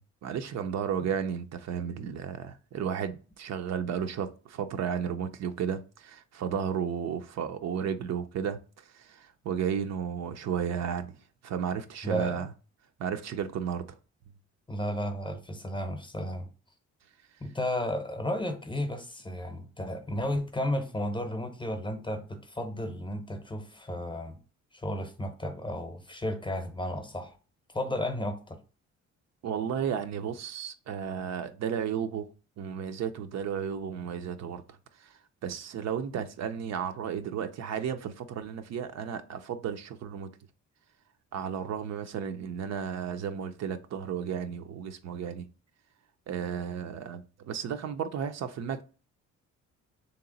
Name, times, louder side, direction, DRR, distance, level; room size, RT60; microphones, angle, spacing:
voice 1, 0.2-11.2 11.4-12.5 13.0-14.0 29.4-40.3 41.3-45.5 46.3-48.8, right 8 dB, 60° right, 0.5 m, -33 dB
voice 2, 12.0-12.4 14.7-16.5 17.4-24.4 24.7-27.3 27.7-28.6, left 1 dB, 15° left, 0.7 m, -33 dB
3.3 x 2.9 x 3.8 m
cardioid pair, 90°, 30 cm